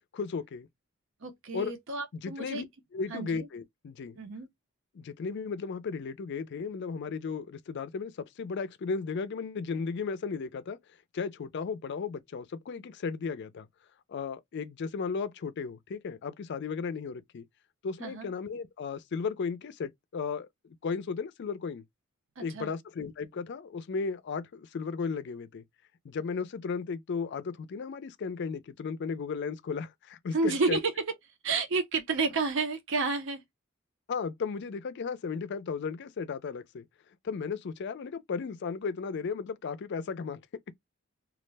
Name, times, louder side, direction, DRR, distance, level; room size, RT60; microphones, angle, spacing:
voice 1, 0.1-0.7 1.5-1.7 2.1-2.6 2.9-4.2 4.9-10.8 11.1-13.7 14.1-17.4 17.8-21.8 22.4-25.6 26.0-30.8 34.1-36.9 37.2-40.4, left 5 dB, 60° left, 0.4 m, -35 dB
voice 2, 1.2-2.7 3.1-3.5 4.2-4.5 18.0-18.3 22.4-22.7 30.3-31.0 31.4-33.4, right 4 dB, 65° right, 0.6 m, -30 dB
2.3 x 2.1 x 3.2 m
head